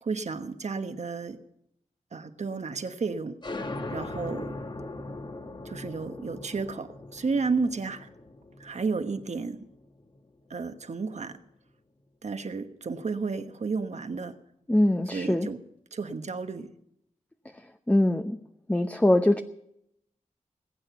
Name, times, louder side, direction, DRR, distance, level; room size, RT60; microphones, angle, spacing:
voice 1, 0.0-1.4 2.1-3.3 3.9-4.6 5.6-8.1 8.6-9.6 10.5-11.4 12.2-14.4 15.1-15.6 15.9-16.7, right 4 dB, 60° right, 8 dB, 1.2 m, -32 dB
sound 1, 3.4-10.7, left 2 dB, 35° left, 1.3 m, -40 dB
voice 2, 14.7-15.5 17.9-18.4 18.7-19.4, left 1 dB, 10° left, 7 dB, 0.8 m, -22 dB
20.0 x 8.9 x 7.0 m, 0.77 s
wide cardioid pair, 80°, 13 cm